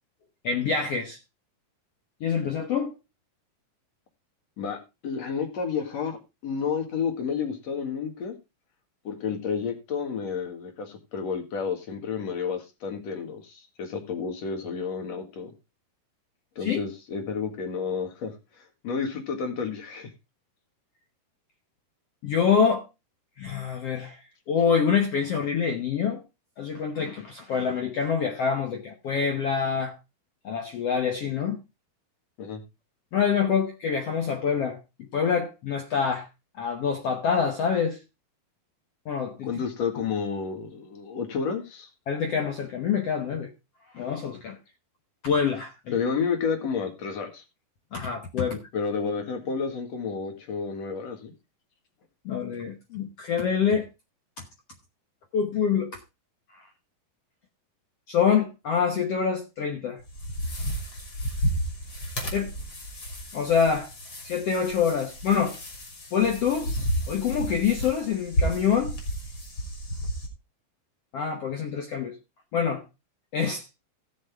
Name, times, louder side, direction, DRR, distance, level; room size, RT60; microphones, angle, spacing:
voice 1, 0.4-1.2 2.2-2.9 16.6-16.8 22.2-22.8 23.4-24.2 24.5-26.2 26.6-29.9 30.4-31.6 33.1-36.3 36.6-38.0 39.0-39.5 42.1-43.5 43.9-44.6 45.2-46.0 47.9-48.6 52.2-53.9 54.4-54.5 55.3-56.0 58.1-60.0 62.3-62.5 63.3-63.9 64.2-65.6 66.1-66.7 67.1-68.9 71.1-72.1 72.5-72.8 73.3-73.7, left 6 dB, 70° left, 1.5 m, -26 dB
voice 2, 4.6-6.2 6.4-8.4 9.0-15.5 16.6-18.3 18.8-20.1 32.4-32.6 39.4-41.9 45.9-47.4 48.7-51.3, left 6 dB, 50° left, 2.6 m, -30 dB
sound 1, 60.0-70.3, equal, 30° left, 3.3 m, -32 dB
16.5 x 6.7 x 3.5 m
omnidirectional pair, 4.4 m